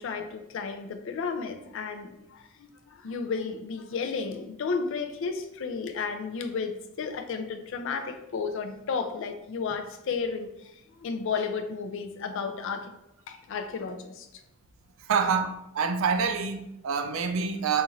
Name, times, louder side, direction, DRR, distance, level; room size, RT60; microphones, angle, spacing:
voice 1, 0.0-12.9 13.3-14.3, left 5 dB, 65° left, 0.4 m, -33 dB
voice 2, 15.1-17.8, right 6 dB, 65° right, 0.4 m, -27 dB
3.0 x 2.5 x 3.8 m
head